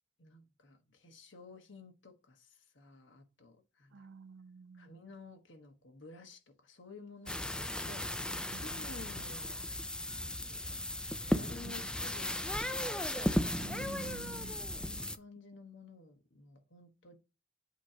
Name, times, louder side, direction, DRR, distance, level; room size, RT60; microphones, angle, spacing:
voice 1, 0.2-4.1 4.7-9.6 10.2-10.8 11.2-13.1 14.3-17.2, left 3 dB, 75° left, 1.3 m, -54 dB
voice 2, 3.9-4.9 8.5-8.9 11.6-11.7 13.6-14.6, right 4 dB, 70° right, 0.4 m, -49 dB
sound 1, 7.3-15.2, left 1 dB, 5° left, 0.3 m, -36 dB
8.3 x 3.0 x 4.9 m
head